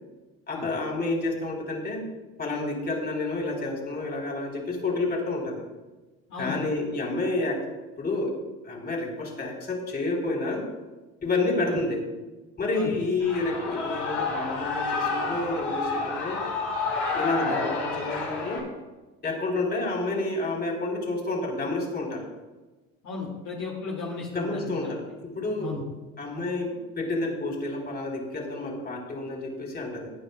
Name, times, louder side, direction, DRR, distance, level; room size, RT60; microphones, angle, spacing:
voice 1, 0.5-2.0 2.4-5.6 6.4-7.7 8.0-8.3 8.6-10.7 11.2-12.0 12.6-16.4 17.1-18.6 19.2-22.3 24.3-25.7 26.2-30.1, left 2 dB, 30° left, -1 dB, 4.2 m, -29 dB
Shout / Cheering, 13.2-18.6, left 4 dB, 85° left, 3.5 m, -29 dB
voice 2, 23.0-24.9 25.6-25.8, left 4 dB, 60° left, -3 dB, 2.4 m, -35 dB
19.0 x 9.9 x 2.4 m, 1.2 s
supercardioid pair, 85°, 32 cm